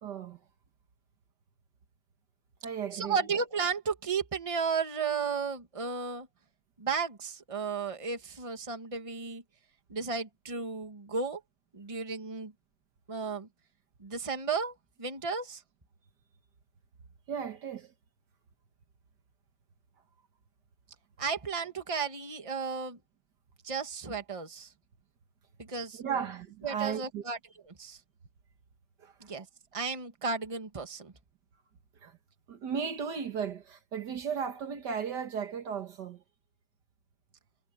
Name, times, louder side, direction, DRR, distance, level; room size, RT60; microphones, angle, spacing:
voice 1, 0.0-0.4 2.6-3.2 17.3-17.9 25.9-27.2 29.0-29.1 32.0-32.2 32.5-36.2, right 7 dB, 65° right, 1.9 m, -35 dB
voice 2, 2.9-6.3 6.8-9.4 9.9-11.4 11.7-12.5 13.1-13.5 14.0-15.6 21.2-23.0 23.6-24.7 25.6-26.2 26.6-27.4 27.6-28.0 29.2-29.5 29.7-31.1, right 5 dB, 20° right, 1.6 m, -34 dB
omnidirectional pair, 2.0 m